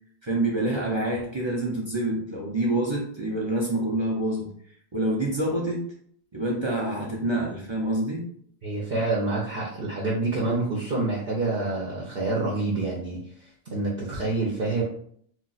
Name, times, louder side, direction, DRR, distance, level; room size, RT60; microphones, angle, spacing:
voice 1, 0.2-4.5 4.9-5.9 6.3-8.2, right 1 dB, 35° right, -3 dB, 0.5 m, -27 dB
voice 2, 8.6-13.2 13.7-14.8, right 3 dB, 65° right, -3 dB, 0.9 m, -27 dB
2.4 x 2.4 x 3.9 m, 0.63 s
omnidirectional pair, 1.1 m